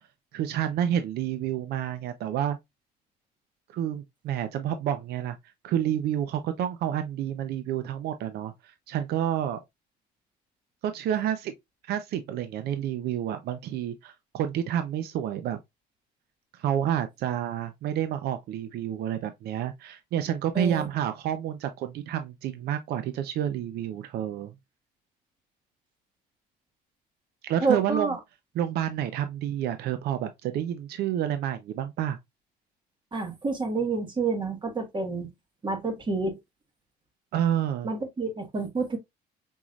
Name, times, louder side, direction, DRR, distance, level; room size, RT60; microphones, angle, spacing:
voice 1, 0.3-2.6 3.7-5.4 5.6-9.6 10.8-11.5 11.8-15.6 16.5-24.5 27.4-28.2 28.5-32.2 37.3-37.9, right 10 dB, 70° right, 0.6 m, -29 dB
voice 2, 20.5-20.9 27.6-28.2 33.1-35.3 35.6-36.4 37.8-39.0, right 4 dB, 30° right, 1.5 m, -28 dB
5.5 x 3.0 x 2.4 m
cardioid pair, 110°, 17 cm